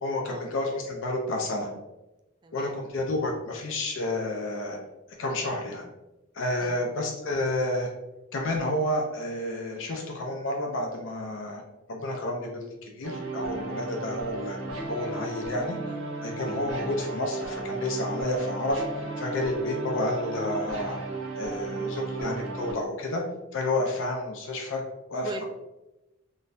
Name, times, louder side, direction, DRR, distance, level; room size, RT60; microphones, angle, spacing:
voice 1, 0.0-1.7 2.5-4.8 5.2-5.8 6.3-7.9 8.3-11.6 11.9-14.6 14.9-15.8 16.2-18.8 19.2-21.0 21.4-23.2 23.5-24.8 25.1-25.4, left 1 dB, 60° left, 1 dB, 0.5 m, -30 dB
voice 2, 2.4-2.7 6.6-6.8 13.6-13.9 15.9-16.4 25.2-25.4, right 3 dB, 20° right, 5 dB, 0.3 m, -42 dB
sound 1, 13.0-22.7, right 3 dB, 90° right, 0.8 m, -34 dB
3.8 x 2.6 x 2.5 m, 1.0 s
head